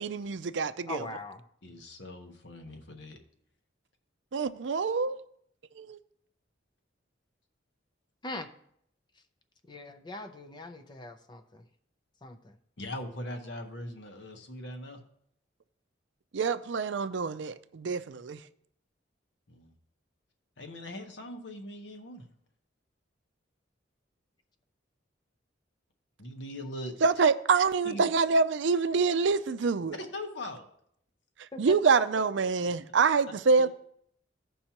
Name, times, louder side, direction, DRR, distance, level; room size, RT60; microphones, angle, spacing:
voice 1, 0.0-1.1 4.3-5.2 5.8-6.0 16.3-18.4 27.0-30.0 31.4-33.7, right 4 dB, 70° right, 0.5 m, -26 dB
voice 2, 0.9-1.4 8.2-8.5 9.7-11.6 12.2-12.5 31.5-31.8, left 2 dB, 25° left, 0.5 m, -41 dB
voice 3, 1.6-3.2 12.8-15.0 19.5-19.7 20.6-22.3 26.2-26.9 27.8-28.0 30.0-30.6, left 1 dB, 65° left, 1.2 m, -41 dB
15.5 x 5.4 x 2.9 m
head